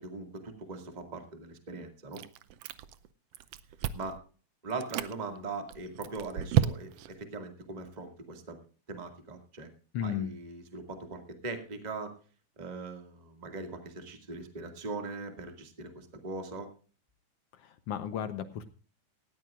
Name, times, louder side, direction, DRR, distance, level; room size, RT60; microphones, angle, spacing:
voice 1, 0.0-2.2 3.9-4.2 4.6-8.6 8.9-9.7 10.0-12.1 12.6-16.7, right 3 dB, 15° right, 5 dB, 1.6 m, -40 dB
Chewing mastication, 2.1-3.1 3.3-4.2 4.7-5.1 5.7-7.1, right 11 dB, 85° right, 1.4 m, -31 dB
voice 2, 9.9-10.3 17.6-18.7, left 8 dB, 70° left, 11 dB, 1.5 m, -34 dB
18.5 x 14.0 x 2.5 m, 0.38 s
omnidirectional pair, 3.6 m